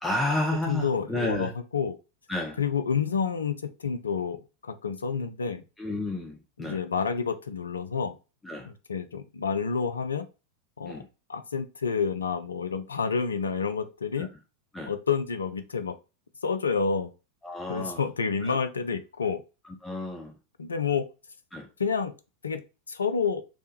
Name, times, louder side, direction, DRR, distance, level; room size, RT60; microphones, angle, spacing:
voice 1, 0.0-1.5 2.3-2.6 5.8-6.8 8.4-8.7 10.9-11.0 14.2-14.3 14.7-14.9 17.4-18.0 18.4-18.6 19.8-20.3 21.5-21.7, left 1 dB, 10° left, 1 dB, 0.5 m, -31 dB
voice 2, 0.7-2.0 2.6-3.5 3.8-4.4 4.6-5.6 6.6-8.2 8.7-10.3 10.8-11.0 11.3-14.3 14.9-15.9 16.4-17.1 17.7-19.4 20.6-21.0 21.8-22.1 22.4-22.6 22.9-23.4, left 5 dB, 75° left, 10 dB, 0.4 m, -29 dB
3.3 x 2.2 x 2.7 m, 0.30 s
figure-of-eight pair, 90°, 0 cm